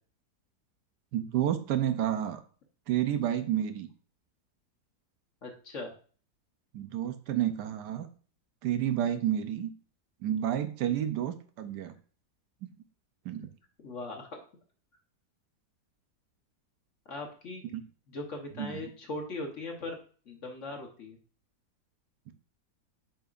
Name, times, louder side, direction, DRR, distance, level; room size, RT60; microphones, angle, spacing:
voice 1, 1.1-2.4 2.9-3.9 6.7-8.1 8.6-9.7 10.2-11.9 12.6-12.7 13.2-13.5 18.6-18.8, right 11 dB, 75° right, 9 dB, 1.2 m, -30 dB
voice 2, 5.4-5.9 13.8-14.4 17.1-17.6 18.1-20.0 20.3-21.2, left 2 dB, 50° left, 2 dB, 1.3 m, -39 dB
7.6 x 5.2 x 2.5 m, 0.41 s
omnidirectional pair, 1.8 m